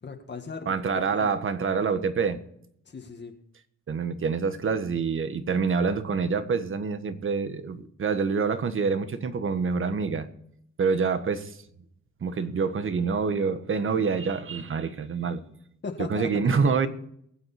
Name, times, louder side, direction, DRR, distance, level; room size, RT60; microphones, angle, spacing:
voice 1, 0.0-1.3 2.9-3.3 15.8-16.4, left 4 dB, 35° left, 2.0 m, -38 dB
voice 2, 0.7-2.4 3.9-10.3 10.8-11.6 12.2-15.4 16.1-16.9, right 5 dB, 45° right, 1.6 m, -26 dB
23.0 x 8.1 x 4.4 m
cardioid pair, 90°, 30 cm